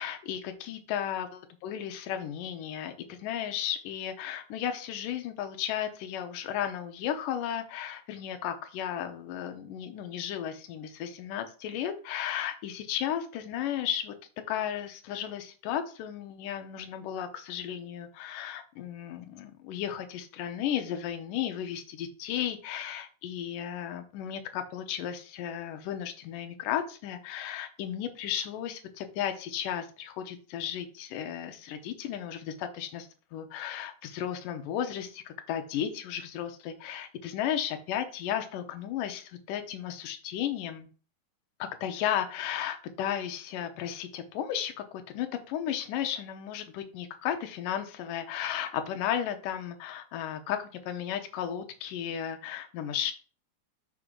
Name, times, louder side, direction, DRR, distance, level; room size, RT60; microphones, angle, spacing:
voice 1, 0.0-14.1 14.5-40.9 41.6-53.1, left 10 dB, 80° left, 7 dB, 2.4 m, -34 dB
6.1 x 3.7 x 6.2 m, 0.39 s
omnidirectional pair, 3.9 m